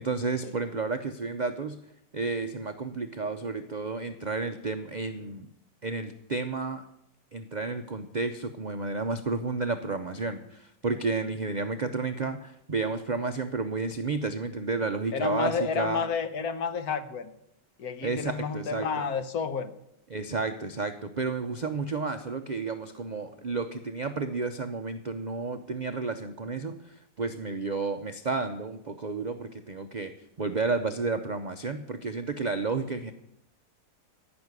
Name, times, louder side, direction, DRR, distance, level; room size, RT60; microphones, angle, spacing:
voice 1, 0.0-1.8 2.1-5.5 5.8-6.8 7.3-16.0 18.0-19.1 20.1-30.1 30.4-33.1, right 4 dB, 75° right, 0.4 m, -31 dB
voice 2, 15.1-17.3 17.8-19.7, left 5 dB, 65° left, 1.3 m, -30 dB
14.0 x 6.2 x 9.6 m
omnidirectional pair, 1.8 m